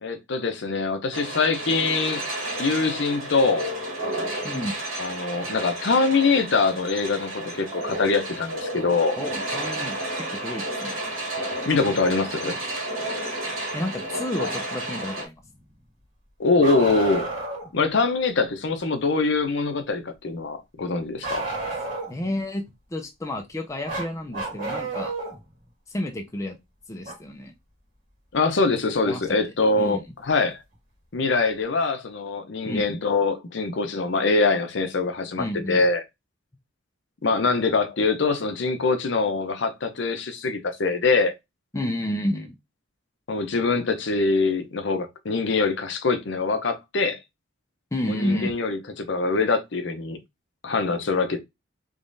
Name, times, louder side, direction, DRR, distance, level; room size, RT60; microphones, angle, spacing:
voice 1, 0.0-2.2 2.6-3.7 5.0-9.2 11.6-12.6 16.4-17.3 17.7-21.5 28.3-30.0 30.3-30.6 31.1-36.0 37.2-41.3 43.3-47.2 48.1-50.2 50.6-51.4, left 3 dB, 60° left, 0.6 m, -23 dB
sound 1, 1.1-15.3, right 1 dB, 85° right, 1.9 m, -32 dB
voice 2, 4.4-4.7 9.2-10.9 13.7-15.4 22.1-25.1 25.9-26.6 26.9-27.5 29.0-29.4 29.8-30.0 32.6-32.9 35.4-35.8 41.7-42.6 47.9-48.6, left 1 dB, 15° left, 0.4 m, -30 dB
Bark, 16.6-17.7 21.2-22.3 23.9-25.4 27.0-27.1 29.1-29.2 30.3-30.4, right 3 dB, 40° right, 1.8 m, -31 dB
3.6 x 3.0 x 2.6 m
head